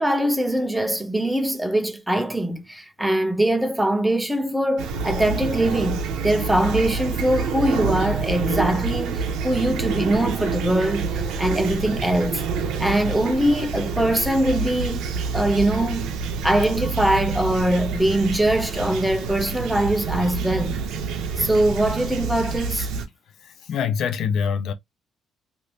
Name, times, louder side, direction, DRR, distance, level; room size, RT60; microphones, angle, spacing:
voice 1, 0.0-12.4 12.8-16.1 16.4-20.8 21.4-22.9, right 1 dB, 5° right, 0.6 m, -22 dB
Fowl / Chirp tweet, 4.8-23.1, right 5 dB, 85° right, 0.6 m, -27 dB
voice 2, 23.4-24.7, left 7 dB, 70° left, 0.5 m, -25 dB
3.2 x 2.6 x 2.7 m
cardioid pair, 105°, 0 cm